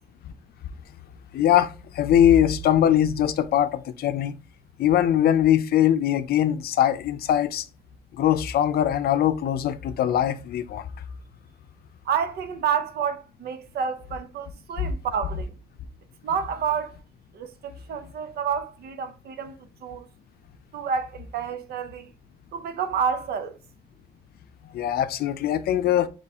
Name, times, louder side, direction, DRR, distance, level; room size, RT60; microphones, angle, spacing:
voice 1, 1.3-4.3 4.8-7.6 8.2-10.8 14.8-14.9 24.7-26.1, left 10 dB, 75° left, 0.5 m, -21 dB
voice 2, 12.0-15.6 16.2-17.0 17.3-20.1 20.7-22.1 22.5-23.6, right 7 dB, 80° right, 0.7 m, -29 dB
4.1 x 3.1 x 3.5 m
cardioid pair, 125°, 16 cm